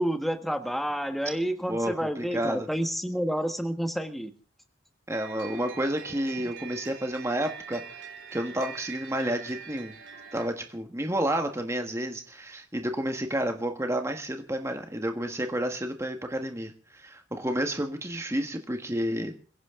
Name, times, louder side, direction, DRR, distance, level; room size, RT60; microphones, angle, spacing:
voice 1, 0.0-4.3, equal, ahead, 6 dB, 1.5 m, -29 dB
voice 2, 1.7-2.7 5.1-9.9 10.3-19.3, right 1 dB, 15° right, 5 dB, 1.5 m, -30 dB
sound 1, 5.1-10.5, right 6 dB, 70° right, 3.9 m, -43 dB
23.0 x 16.0 x 3.8 m, 0.39 s
head